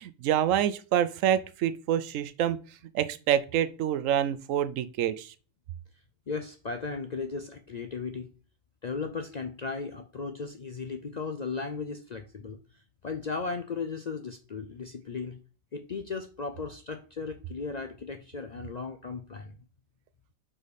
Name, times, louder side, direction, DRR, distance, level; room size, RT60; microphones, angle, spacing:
voice 1, 0.0-2.6 2.9-5.3, right 10 dB, 80° right, 1.0 m, -27 dB
voice 2, 6.3-8.3 8.8-12.6 13.0-15.4 15.7-19.6, left 4 dB, 55° left, 0.5 m, -36 dB
5.1 x 4.9 x 4.1 m
omnidirectional pair, 1.3 m